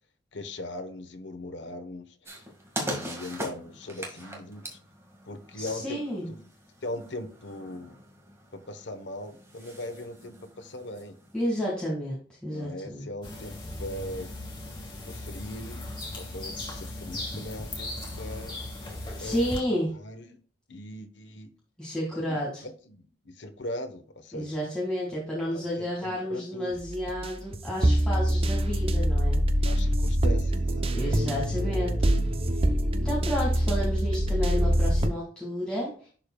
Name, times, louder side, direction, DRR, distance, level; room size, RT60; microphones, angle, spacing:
voice 1, 0.3-2.5 2.8-4.8 5.3-6.4 6.8-8.0 8.5-11.2 12.5-14.3 15.1-15.8 16.2-18.6 19.2-19.5 20.0-20.4 20.7-21.5 22.3-24.6 25.5-26.7 29.6-31.2, left 1 dB, 80° left, 9 dB, 1.1 m, -40 dB
sound 1, 2.2-11.5, right 1 dB, 15° right, 1.9 m, -41 dB
voice 2, 5.6-6.3 11.3-13.1 19.2-19.9 21.8-22.6 24.3-29.4 30.9-32.2 32.5-32.7 33.0-36.1, equal, 5° left, -7 dB, 2.1 m, -31 dB
sound 2, 13.2-19.6, left 1 dB, 25° left, 2.6 m, -37 dB
sound 3, 26.7-35.1, equal, 30° right, 0.7 m, -25 dB
11.0 x 5.1 x 2.3 m, 0.43 s
head